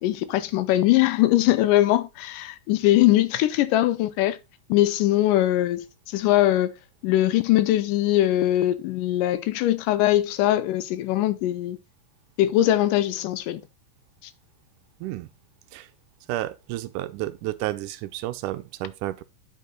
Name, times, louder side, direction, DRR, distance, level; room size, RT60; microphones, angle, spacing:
voice 1, 0.0-4.4 4.7-6.7 7.0-11.8 12.4-13.6, left 14 dB, 80° left, 2.2 m, -21 dB
voice 2, 16.3-19.2, right 15 dB, 80° right, 2.0 m, -31 dB
9.0 x 5.2 x 3.8 m
omnidirectional pair, 3.8 m